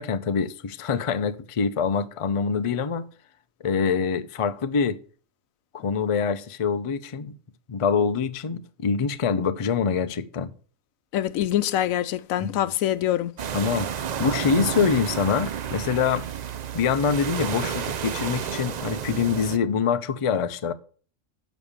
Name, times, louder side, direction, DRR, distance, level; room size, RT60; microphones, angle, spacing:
voice 1, 0.0-3.1 3.6-5.0 5.7-7.3 7.7-10.5 12.4-12.6 13.5-13.9 14.2-16.2 16.7-20.7, left 6 dB, 55° left, 0.3 m, -25 dB
voice 2, 11.1-13.3, left 12 dB, 90° left, 1.0 m, -24 dB
sound 1, 13.4-19.6, right 8 dB, 65° right, 0.4 m, -31 dB
7.2 x 5.2 x 6.6 m
omnidirectional pair, 1.4 m